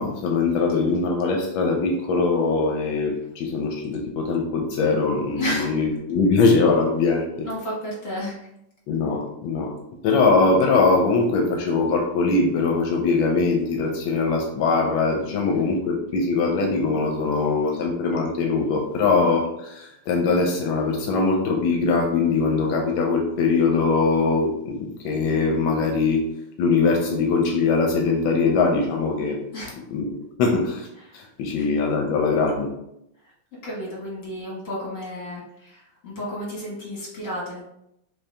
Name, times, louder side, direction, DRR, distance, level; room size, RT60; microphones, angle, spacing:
voice 1, 0.0-7.5 8.9-9.7 10.0-26.3 26.6-29.4 29.9-30.9 31.1-32.7, left 4 dB, 80° left, 2 dB, 1.3 m, -22 dB
voice 2, 5.4-5.8 7.2-8.5 15.3-15.7 29.5-29.7 31.0-31.2 31.6-31.7 33.6-37.6, equal, 45° left, -6 dB, 1.6 m, -32 dB
3.9 x 2.7 x 3.3 m, 0.80 s
omnidirectional pair, 2.2 m